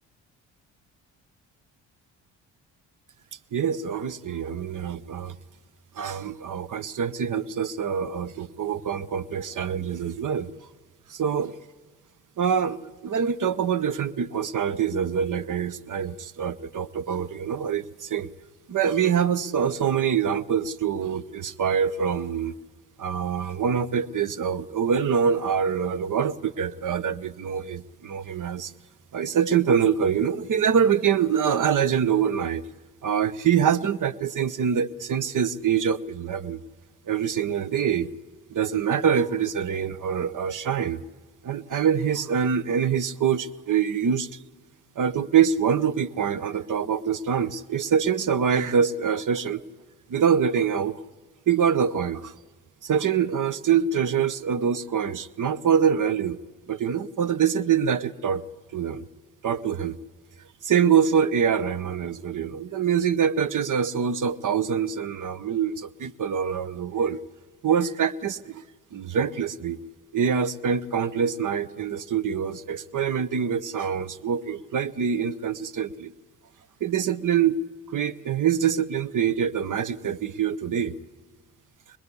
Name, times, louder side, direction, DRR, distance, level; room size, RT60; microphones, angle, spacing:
voice 1, 3.5-5.4 5.9-10.5 11.1-11.6 12.4-18.3 18.7-22.5 23.0-28.7 29.1-32.6 33.0-36.6 37.1-38.1 38.5-41.0 41.4-44.3 45.0-49.6 50.1-51.0 51.5-52.3 52.8-56.4 56.7-58.4 58.7-59.0 59.4-60.0 60.6-67.2 67.6-68.6 68.9-69.8 70.1-76.1 76.8-77.6 77.9-80.9, right 7 dB, 50° right, 16 dB, 1.0 m, -25 dB
22.5 x 21.0 x 8.3 m, 1.3 s
supercardioid pair, 55°, 40 cm